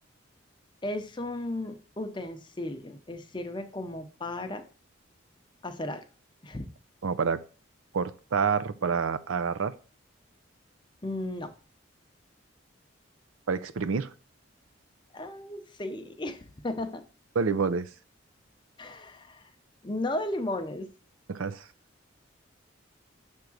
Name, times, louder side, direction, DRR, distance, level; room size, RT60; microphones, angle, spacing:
voice 1, 0.8-4.6 5.6-6.0 6.4-6.7 11.0-11.5 15.1-17.0 18.8-19.5 19.8-20.9, left 1 dB, 25° left, 6 dB, 0.7 m, -35 dB
voice 2, 7.0-7.4 7.9-9.7 13.5-14.1 17.3-17.9 21.3-21.7, right 5 dB, 85° right, 13 dB, 0.5 m, -28 dB
6.6 x 3.6 x 6.1 m, 0.36 s
head